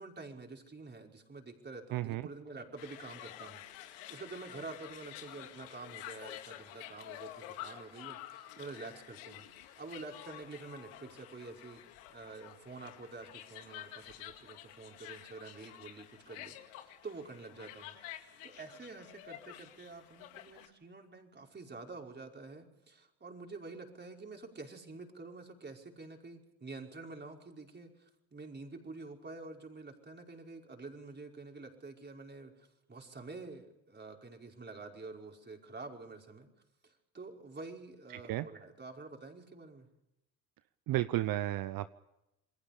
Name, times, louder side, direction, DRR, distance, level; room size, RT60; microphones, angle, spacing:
voice 1, 0.0-11.8 12.1-18.0 18.4-36.5 36.8-39.9, right 3 dB, 25° right, 1 dB, 5.3 m, -48 dB
voice 2, 1.9-2.3 38.1-38.5 40.9-41.9, right 15 dB, 55° right, 14 dB, 0.9 m, -33 dB
sound 1, 2.8-20.7, left 13 dB, 80° left, 2.2 m, -50 dB
28.0 x 21.5 x 5.2 m, 0.87 s
hypercardioid pair, 65°, 40 cm